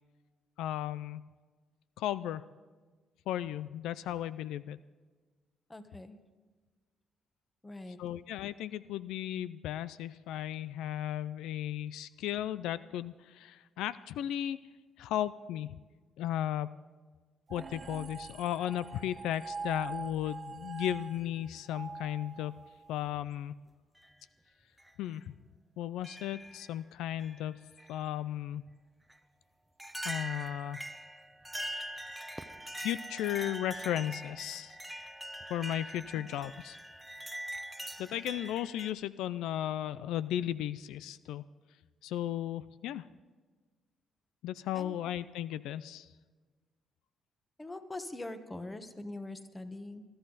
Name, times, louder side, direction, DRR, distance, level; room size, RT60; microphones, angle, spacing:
voice 1, 0.6-1.2 2.0-2.4 3.3-4.8 8.0-14.6 15.0-15.8 16.2-16.7 17.5-22.6 22.9-23.5 25.0-25.2 25.8-27.6 27.9-28.6 30.0-30.8 32.8-34.8 35.5-36.8 38.0-41.4 42.0-43.0 44.4-46.1, left 12 dB, 90° left, 17 dB, 0.4 m, -35 dB
voice 2, 5.7-6.2 7.6-8.0 36.1-36.3 44.7-44.9 47.6-50.0, left 2 dB, 15° left, 9 dB, 1.3 m, -43 dB
sound 1, 17.5-22.9, right 4 dB, 35° right, 0.5 m, -44 dB
sound 2, 19.9-20.8 21.9-22.0 23.1-23.4 24.0-24.1 24.8-24.9 26.0-26.7 27.2-28.0 29.1-29.2 29.8-38.9, right 1 dB, 5° right, 0.8 m, -43 dB
21.5 x 12.5 x 4.0 m, 1.4 s
cardioid pair, 90°, 0 cm